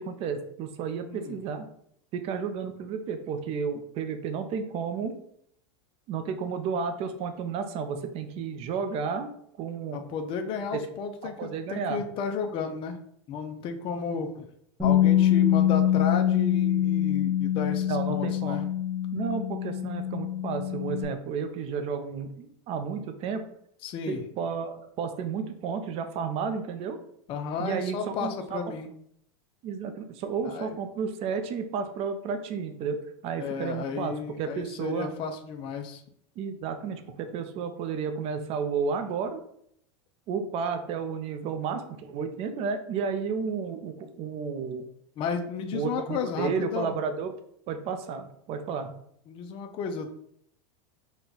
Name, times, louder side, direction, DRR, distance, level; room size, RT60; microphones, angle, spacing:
voice 1, 0.0-1.7 2.1-5.2 6.1-9.3 9.6-10.0 10.7-10.8 11.2-12.0 17.8-18.7 19.1-23.4 24.1-27.0 27.6-28.6 29.6-33.0 33.2-35.1 36.4-39.4 40.3-44.8 45.7-47.3 47.7-48.9, right 6 dB, 40° right, 8 dB, 0.5 m, -32 dB
voice 2, 1.0-1.4 9.9-13.0 13.3-14.5 14.8-18.6 23.8-24.2 27.3-28.9 30.4-30.7 33.4-36.0 45.2-46.9 49.3-50.2, left 5 dB, 35° left, 5 dB, 0.5 m, -33 dB
Bass guitar, 14.8-21.0, left 11 dB, 10° right, 1.1 m, -24 dB
4.3 x 2.2 x 3.8 m, 0.69 s
supercardioid pair, 130°, 15 cm